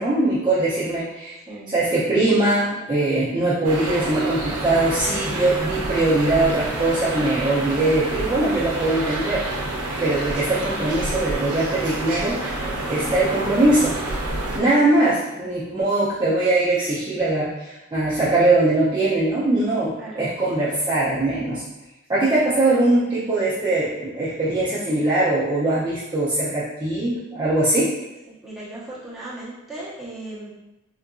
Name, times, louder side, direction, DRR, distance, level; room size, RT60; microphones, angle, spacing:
voice 1, 0.0-1.3 1.7-9.4 10.0-12.4 12.9-14.0 14.6-21.6 22.1-27.9, right 2 dB, 20° right, -10 dB, 0.5 m, -21 dB
sound 1, 3.6-14.6, right 2 dB, 80° right, 0.6 m, -28 dB
voice 2, 28.4-30.5, right 1 dB, ahead, -10 dB, 0.9 m, -36 dB
3.7 x 2.5 x 2.3 m, 1.0 s
head